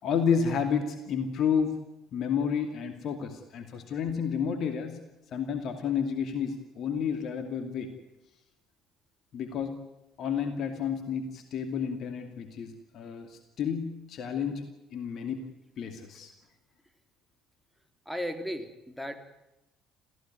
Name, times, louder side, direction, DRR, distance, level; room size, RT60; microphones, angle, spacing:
voice 1, 0.0-1.7 2.1-5.0 5.3-7.9 9.3-9.8 10.2-14.7 14.9-15.4 15.8-16.3, left 7 dB, 50° left, 8 dB, 2.5 m, -30 dB
voice 2, 18.0-19.2, equal, ahead, 6 dB, 3.4 m, -35 dB
29.0 x 15.5 x 9.4 m, 0.94 s
figure-of-eight pair, 55°, 0 cm